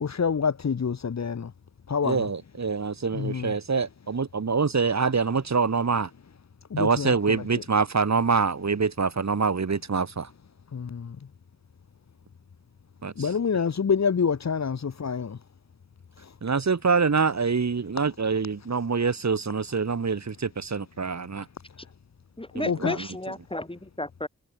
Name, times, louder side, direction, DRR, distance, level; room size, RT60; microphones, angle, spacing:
voice 1, 0.0-1.5 1.9-2.2 3.1-3.5 6.7-7.1 10.7-11.1 13.2-15.4 22.7-23.0, left 6 dB, 60° left, 1.2 m, -26 dB
voice 2, 2.0-6.1 6.8-10.3 13.0-13.3 16.4-21.5 22.5-23.1, right 5 dB, 60° right, 2.6 m, -25 dB
voice 3, 22.4-24.3, left 1 dB, 15° left, 3.2 m, -33 dB
cardioid pair, 55°, 32 cm